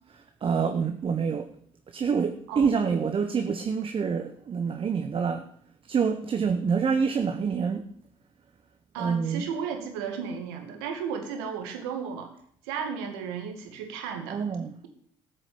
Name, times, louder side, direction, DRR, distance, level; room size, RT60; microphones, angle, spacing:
voice 1, 0.4-1.5 1.9-5.5 5.9-7.9 9.0-9.4 14.3-14.7, right 6 dB, 45° right, 1.2 m, -26 dB
voice 2, 8.9-12.3 12.6-14.4, right 6 dB, 90° right, 2.2 m, -34 dB
13.5 x 6.7 x 8.8 m
hypercardioid pair, 60°, 12 cm